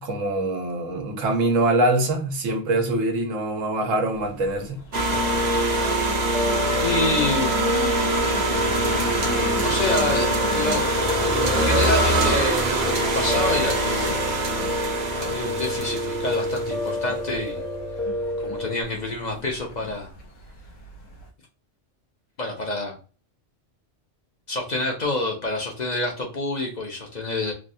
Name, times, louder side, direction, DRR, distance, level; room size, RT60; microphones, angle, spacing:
voice 1, 0.0-4.8, right 2 dB, 90° right, 1.2 m, -24 dB
sound 1, 4.1-21.3, left 3 dB, 90° left, 1.2 m, -39 dB
sound 2, 4.9-17.0, right 2 dB, 45° right, 0.6 m, -24 dB
Piano, 5.1-18.8, left 1 dB, ahead, 0.3 m, -29 dB
voice 2, 6.8-7.6 9.6-10.8 11.5-14.2 15.2-17.6 18.4-20.1 22.4-23.0 24.5-27.5, left 2 dB, 45° left, 0.7 m, -28 dB
3.4 x 2.3 x 2.6 m
omnidirectional pair, 1.3 m